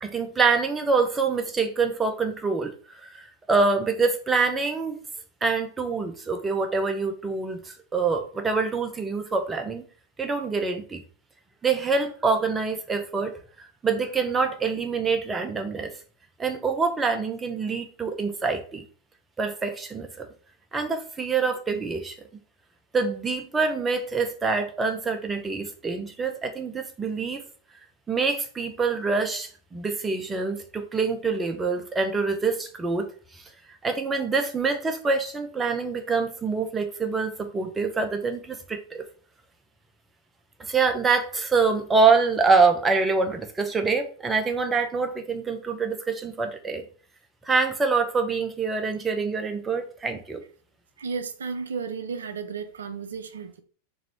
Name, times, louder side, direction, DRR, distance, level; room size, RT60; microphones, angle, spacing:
voice 1, 0.0-2.7 3.0-5.0 5.4-9.9 10.2-11.0 11.6-15.9 16.4-18.9 19.4-20.3 20.7-22.2 22.9-27.4 28.1-33.1 33.3-33.4 33.8-39.0 40.6-46.9 47.4-50.4, right 4 dB, 15° right, 0.6 m, -25 dB
voice 2, 51.0-53.6, right 5 dB, 65° right, 0.4 m, -33 dB
3.0 x 2.6 x 4.3 m
figure-of-eight pair, 90°, 0 cm